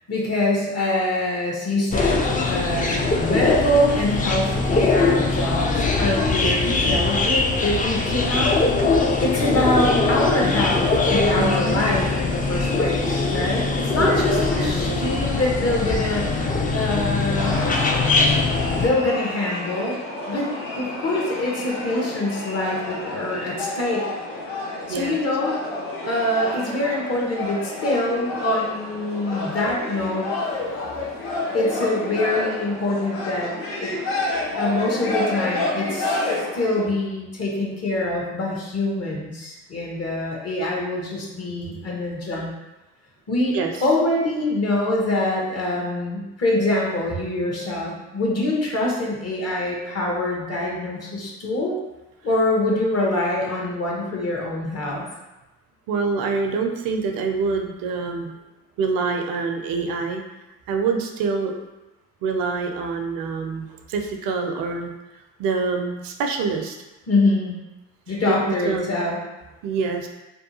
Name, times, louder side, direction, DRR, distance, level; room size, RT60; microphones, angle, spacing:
voice 1, 0.1-8.6 9.2-17.7 18.7-20.0 20.3-20.5 20.7-24.1 24.9-25.6 26.0-30.3 31.5-33.5 33.8-33.9 34.6-42.5 43.3-51.8 52.2-55.0 67.1-67.5 68.1-69.2, left 1 dB, 40° left, -2 dB, 0.9 m, -24 dB
sound 1, 1.9-18.9, left 3 dB, 25° left, 0.4 m, -22 dB
voice 2, 11.4-11.8 13.9-15.2 24.9-25.1 43.5-43.7 55.9-58.3 58.8-60.2 60.7-61.6 62.2-65.0 65.4-66.8 68.6-68.9 69.6-70.1, right 4 dB, 65° right, 4 dB, 0.5 m, -26 dB
sound 2, 17.4-36.9, left 2 dB, 80° left, 0.7 m, -29 dB
2.6 x 2.2 x 2.7 m, 1.0 s
hypercardioid pair, 55°, 37 cm